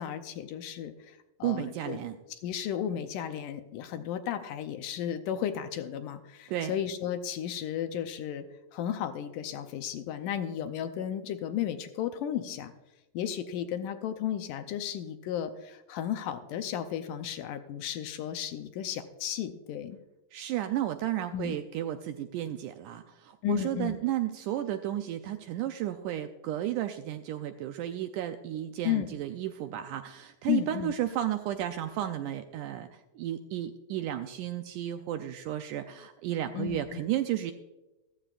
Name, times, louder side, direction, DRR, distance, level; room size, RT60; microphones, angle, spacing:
voice 1, 0.0-2.0 2.4-8.4 8.7-12.7 13.1-20.0 21.3-21.6 23.4-24.0 28.8-29.2 30.5-30.9 36.5-37.0, left 10 dB, 75° left, 8 dB, 2.1 m, -34 dB
voice 2, 1.4-2.2 6.5-6.7 20.3-37.5, right 12 dB, 80° right, 7 dB, 1.8 m, -33 dB
15.0 x 14.0 x 2.4 m, 1.0 s
omnidirectional pair, 4.1 m